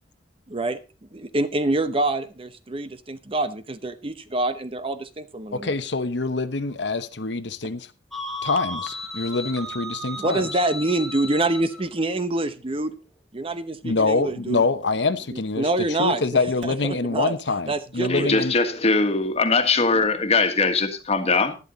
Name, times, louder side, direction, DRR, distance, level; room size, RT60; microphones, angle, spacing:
voice 1, 0.5-0.8 1.1-5.7 10.2-12.9 13.3-14.7 15.3-17.4 17.7-18.3, right 2 dB, 30° right, 0.9 m, -26 dB
voice 2, 5.5-7.8 8.4-10.4 13.8-15.7 16.0-18.5, left 3 dB, 90° left, 1.0 m, -25 dB
sound 1, 8.1-11.8, left 1 dB, ahead, 1.5 m, -34 dB
voice 3, 18.1-21.5, left 3 dB, 35° left, 1.6 m, -21 dB
11.5 x 11.0 x 4.0 m
head